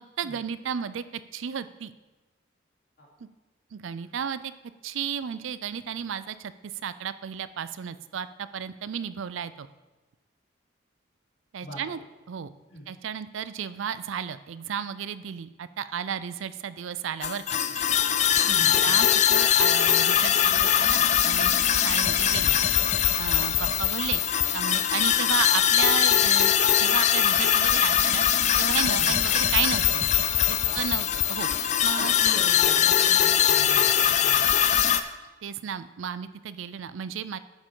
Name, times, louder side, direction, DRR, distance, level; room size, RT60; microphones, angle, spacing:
voice 1, 0.2-1.0 1.3-1.9 3.7-4.5 4.8-6.5 6.8-9.7 11.5-12.0 12.3-12.5 12.9-17.8 18.6-22.6 23.2-24.2 24.5-30.1 30.7-32.1 35.4-37.4, right 7 dB, 75° right, 14 dB, 0.4 m, -33 dB
voice 2, 11.6-12.0 12.7-12.8 18.4-19.0 28.9-29.2 30.6-31.0 32.0-34.5, equal, 60° left, -6 dB, 3.4 m, -41 dB
sound 1, 17.2-35.0, left 10 dB, 35° left, 0.4 m, -22 dB
11.0 x 7.4 x 3.8 m, 1.1 s
head